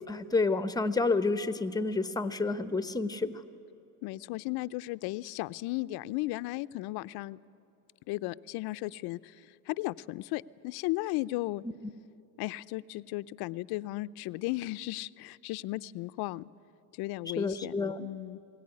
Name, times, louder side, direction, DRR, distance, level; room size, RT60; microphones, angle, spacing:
voice 1, 0.1-3.4 17.4-18.1, left 3 dB, 10° left, 12 dB, 0.9 m, -29 dB
voice 2, 4.0-7.4 8.1-11.6 12.4-16.5 16.9-18.4, left 19 dB, 60° left, 14 dB, 0.6 m, -35 dB
22.0 x 17.5 x 9.7 m, 2.8 s
supercardioid pair, 105°, 43 cm